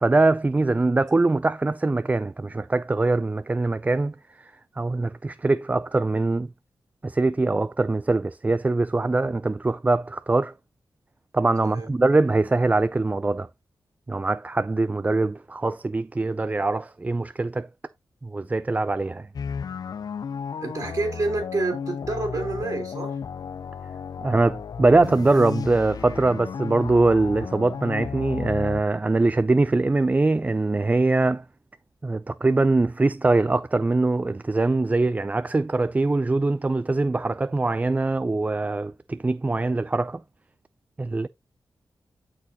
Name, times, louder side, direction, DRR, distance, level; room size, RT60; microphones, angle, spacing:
voice 1, 0.0-6.5 7.0-10.5 11.3-13.5 14.1-17.7 18.2-19.3 24.2-31.4 32.0-40.2 41.0-41.3, right 2 dB, 20° right, 0.3 m, -23 dB
sound 1, 19.3-28.8, left 6 dB, 60° left, 0.4 m, -33 dB
voice 2, 20.6-23.2, right 3 dB, 40° right, 2.9 m, -28 dB
12.0 x 4.6 x 2.8 m
cardioid pair, 80°, 8 cm